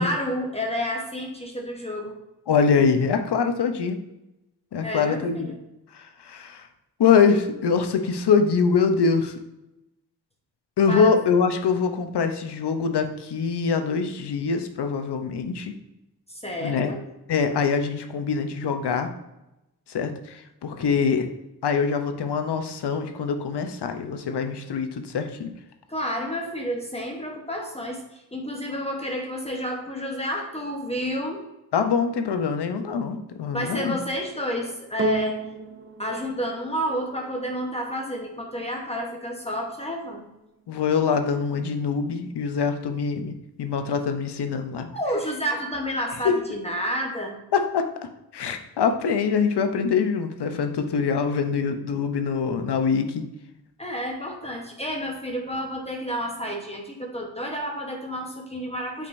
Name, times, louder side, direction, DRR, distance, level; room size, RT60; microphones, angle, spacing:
voice 1, 0.0-2.2 4.8-5.5 10.9-11.2 16.3-17.0 25.9-31.4 33.5-35.4 36.0-40.3 44.9-47.4 53.8-59.1, equal, 15° left, 0 dB, 0.9 m, -30 dB
voice 2, 2.5-4.0 4.7-5.5 5.9-6.7 7.0-9.4 10.8-15.7 16.6-16.9 17.3-19.1 19.9-21.3 21.6-25.5 31.7-34.0 40.7-44.9 46.2-46.4 47.5-48.1 48.3-53.2, left 5 dB, 90° left, 7 dB, 0.7 m, -24 dB
sound 1, 35.0-43.5 44.3-44.4, right 1 dB, 30° right, 0.7 m, -37 dB
8.4 x 5.1 x 2.6 m, 0.93 s
wide cardioid pair, 95°, 39 cm